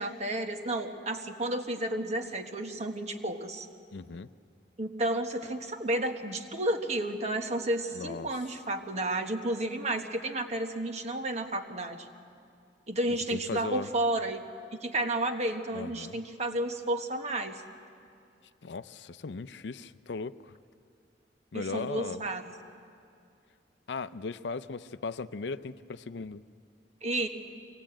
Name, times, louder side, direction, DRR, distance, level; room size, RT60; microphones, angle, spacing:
voice 1, 0.0-3.7 4.8-12.1 12.9-14.4 14.7-17.6 21.5-22.4 27.0-27.3, right 1 dB, 40° right, 5 dB, 1.3 m, -32 dB
voice 2, 3.9-4.3 7.9-8.3 13.3-13.9 15.7-16.2 18.6-20.5 21.5-22.2 23.9-26.4, left 4 dB, 75° left, 14 dB, 0.5 m, -37 dB
23.0 x 17.5 x 8.8 m, 2.4 s
head